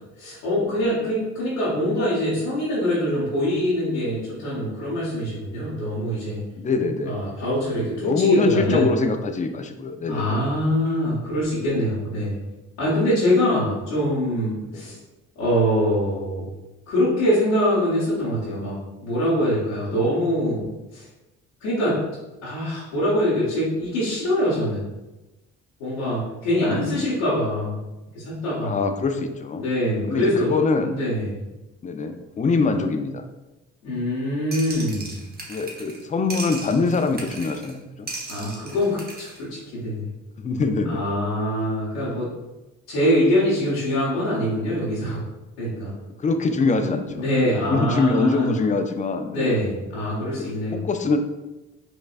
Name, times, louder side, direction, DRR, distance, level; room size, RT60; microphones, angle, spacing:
voice 1, 0.0-6.4 7.1-8.9 10.1-12.4 12.8-15.0 15.4-16.4 16.9-18.7 19.0-21.1 21.6-22.0 22.4-24.8 25.8-27.8 28.1-28.8 29.6-30.5 30.9-31.4 33.8-35.1 38.3-40.1 40.9-42.3 42.9-45.2 45.6-45.9 47.1-48.5 49.3-50.8, equal, 90° left, -10 dB, 1.1 m, -24 dB
voice 2, 6.6-7.2 8.0-10.4 14.7-15.0 26.7-27.1 28.6-29.6 30.1-31.0 31.8-33.2 35.5-38.1 40.4-41.0 46.0-49.6 50.4-51.2, left 3 dB, 25° left, 6 dB, 0.4 m, -24 dB
sound 1, 34.5-36.0 36.3-37.7 38.1-39.4, right 2 dB, 30° right, 0.8 m, -37 dB
4.7 x 2.2 x 2.4 m, 1.0 s
hypercardioid pair, 60°, 31 cm